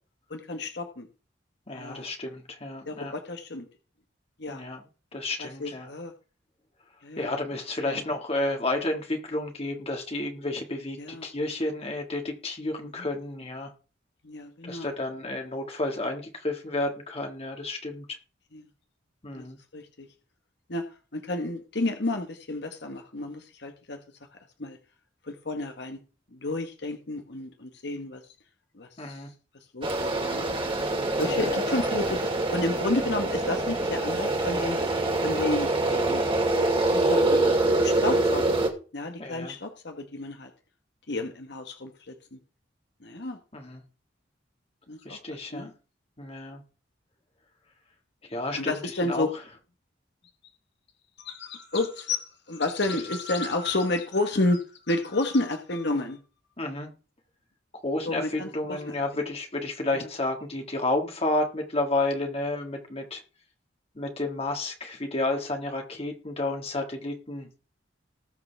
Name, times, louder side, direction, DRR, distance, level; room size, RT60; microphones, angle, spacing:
voice 1, 0.3-1.1 1.7-2.1 2.9-3.6 4.4-4.6 5.4-6.1 7.0-7.3 11.0-11.3 14.2-14.9 18.5-18.6 19.3-19.4 19.7-20.1 20.7-20.8 21.1-24.0 24.6-24.8 25.2-26.0 26.3-28.2 28.8-29.2 29.7-30.5 31.2-34.8 35.2-36.2 36.9-37.5 37.8-38.6 38.9-40.5 41.1-42.4 43.0-43.4 44.9-45.7 48.6-49.3 51.2-56.2 58.0-59.2 59.9-60.1, left 2 dB, 65° left, 5 dB, 1.4 m, -31 dB
voice 2, 1.7-3.1 4.5-4.8 5.1-5.9 7.2-13.7 14.6-18.2 19.2-19.6 29.0-29.3 31.2-31.6 39.2-39.5 43.5-43.8 45.1-45.7 46.2-46.6 48.2-49.4 56.6-56.9 57.8-63.2 64.0-67.5, left 2 dB, 35° left, 2 dB, 1.8 m, -31 dB
sound 1, 29.8-38.7, right 2 dB, 30° right, 2.5 m, -25 dB
20.0 x 6.8 x 3.4 m, 0.36 s
head